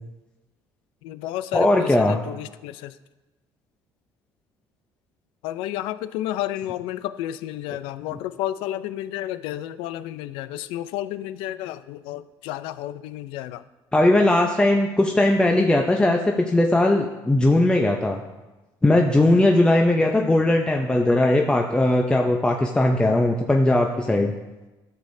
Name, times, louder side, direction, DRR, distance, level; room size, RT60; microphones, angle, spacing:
voice 1, 1.0-2.9 5.4-13.6, left 13 dB, 90° left, 14 dB, 0.4 m, -31 dB
voice 2, 1.5-2.2 8.1-8.2 13.9-18.2 18.8-24.3, left 1 dB, 10° left, 2 dB, 0.6 m, -19 dB
12.5 x 6.6 x 2.6 m, 1.1 s
cardioid pair, 105°, 9 cm